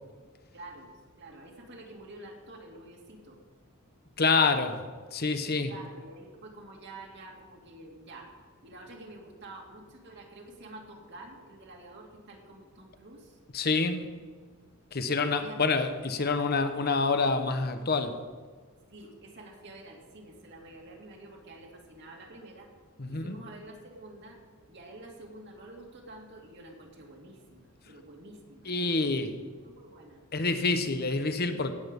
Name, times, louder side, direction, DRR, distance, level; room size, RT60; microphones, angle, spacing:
voice 1, 0.5-3.4 5.7-8.4 8.6-13.4 15.1-15.6 18.9-22.7 23.1-24.4 24.7-29.3 29.6-30.2, right 2 dB, 50° right, 0 dB, 2.3 m, -48 dB
voice 2, 4.2-4.9 5.1-5.7 13.5-14.1 14.9-18.2 23.0-23.4 28.7-29.3 30.3-31.7, left 4 dB, 45° left, 8 dB, 1.0 m, -27 dB
17.5 x 8.1 x 5.3 m, 1.5 s
head